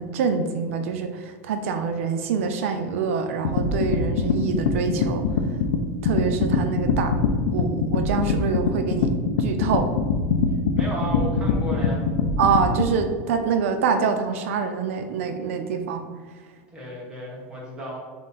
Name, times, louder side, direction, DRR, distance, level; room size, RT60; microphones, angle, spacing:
voice 1, 0.0-5.3 6.0-7.1 7.5-9.1 9.4-9.9 12.4-16.1, right 6 dB, 85° right, 6 dB, 0.4 m, -25 dB
sound 1, 3.4-12.9, left 5 dB, 85° left, 0.4 m, -23 dB
voice 2, 10.8-12.1 16.7-18.0, equal, 10° right, -4 dB, 1.0 m, -33 dB
3.7 x 2.7 x 3.9 m, 1.5 s
supercardioid pair, 170°, 7 cm